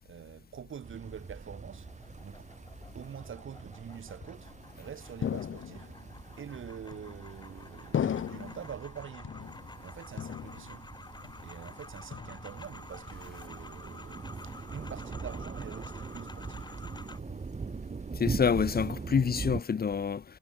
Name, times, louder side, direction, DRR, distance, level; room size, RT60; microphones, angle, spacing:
voice 1, 0.0-2.5 2.9-6.0 6.4-9.4 9.8-10.9 11.4-16.7 18.8-19.6, right 8 dB, 75° right, 7.3 m, -46 dB
sound 1, 0.8-19.6, right 4 dB, 35° right, 6.9 m, -42 dB
sound 2, 1.5-17.2, left 3 dB, 20° left, 7.6 m, -51 dB
sound 3, 5.2-6.1 6.9-7.4 7.9-8.7 9.2-9.9 10.2-10.9 11.2-11.7 12.1-12.7, left 8 dB, 75° left, 1.8 m, -36 dB
voice 2, 18.2-20.2, left 6 dB, 50° left, 2.2 m, -27 dB
wide cardioid pair, 160°, 21 cm